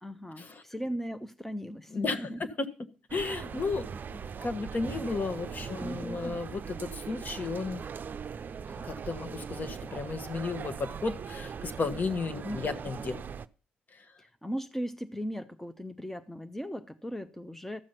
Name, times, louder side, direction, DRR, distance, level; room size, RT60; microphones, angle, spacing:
voice 1, 0.0-2.4 5.5-6.4 12.4-12.8 14.2-17.8, equal, 5° left, 0.8 m, -38 dB
voice 2, 1.9-2.7 3.1-7.9 8.8-13.2, left 4 dB, 40° left, 1.3 m, -34 dB
sound 1, 3.1-13.5, right 6 dB, 45° right, 0.6 m, -40 dB
13.0 x 7.5 x 5.7 m
hypercardioid pair, 45°, 5 cm